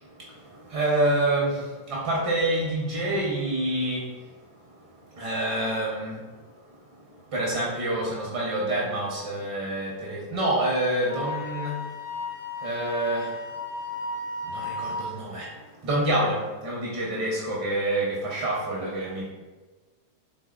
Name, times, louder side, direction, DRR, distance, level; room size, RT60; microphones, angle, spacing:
voice 1, 0.2-11.8 12.6-13.4 14.4-19.3, right 1 dB, 45° right, -4 dB, 0.6 m, -28 dB
Wind instrument woodwind instrument, 11.1-15.1, left 2 dB, 75° left, 0.6 m, -34 dB
3.2 x 2.0 x 2.2 m, 1.3 s
figure-of-eight pair, 90°, 0 cm